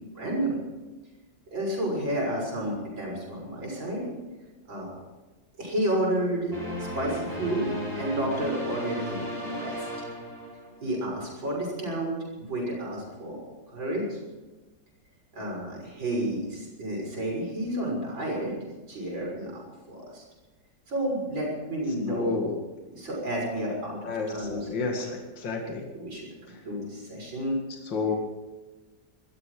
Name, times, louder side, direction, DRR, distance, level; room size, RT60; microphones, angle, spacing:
voice 1, 0.1-0.6 1.5-4.1 4.7-5.0 5.6-6.6 6.9-10.0 10.8-13.4 13.7-14.2 15.3-18.5 18.9-20.2 20.9-22.4 22.9-25.1 25.6-27.6, right 1 dB, 80° right, -2 dB, 7.1 m, -31 dB
sound 1, 6.5-11.0, equal, 30° left, 6.1 m, -35 dB
voice 2, 22.1-22.5 24.1-25.8 27.9-28.1, left 4 dB, 70° left, 1 dB, 2.7 m, -30 dB
21.0 x 13.5 x 5.0 m, 1.2 s
omnidirectional pair, 2.0 m